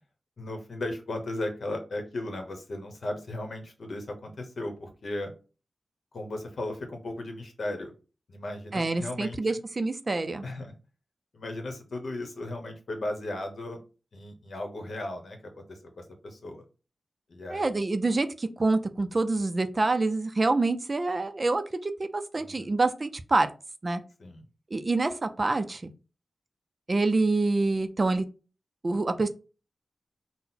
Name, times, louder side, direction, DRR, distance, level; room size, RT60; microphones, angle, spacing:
voice 1, 0.4-5.3 6.1-7.9 8.3-9.4 10.4-10.8 11.3-13.8 14.1-16.6 17.3-17.8 22.4-22.7 24.2-24.5, left 1 dB, 65° left, 4 dB, 1.0 m, -36 dB
voice 2, 8.7-10.4 17.5-23.5 23.8-24.0 24.7-25.9 26.9-28.3 28.8-29.3, right 3 dB, 35° right, 9 dB, 0.4 m, -26 dB
3.9 x 2.1 x 4.0 m, 0.33 s
wide cardioid pair, 100°, 0 cm